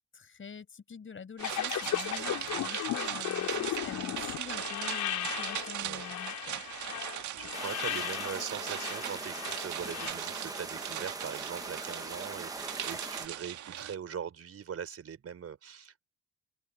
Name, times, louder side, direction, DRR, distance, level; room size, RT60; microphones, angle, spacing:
voice 1, 0.1-6.6, left 6 dB, 40° left, 5.5 m, -46 dB
sound 1, 1.4-10.1, left 12 dB, 80° left, 4.4 m, -36 dB
sound 2, 1.4-13.9, right 11 dB, 75° right, 1.8 m, -39 dB
voice 2, 2.4-2.7 5.8-6.1 7.4-16.0, right 7 dB, 55° right, 5.2 m, -41 dB
sound 3, 7.5-13.3, right 2 dB, 10° right, 1.1 m, -41 dB
cardioid pair, 90°, 30 cm